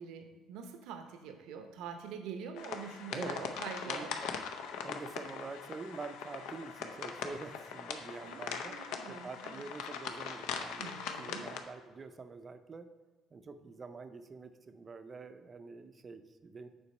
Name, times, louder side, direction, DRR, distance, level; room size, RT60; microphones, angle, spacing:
voice 1, 0.0-4.2 8.1-9.6 10.8-11.5, right 6 dB, 85° right, 6 dB, 0.7 m, -45 dB
sound 1, 2.6-11.6, left 6 dB, 85° left, 0.7 m, -41 dB
voice 2, 3.9-4.3 4.8-8.7 9.1-12.9 13.3-16.7, right 4 dB, 25° right, 9 dB, 0.5 m, -46 dB
7.0 x 4.4 x 5.3 m, 1.4 s
cardioid pair, 155°, 0 cm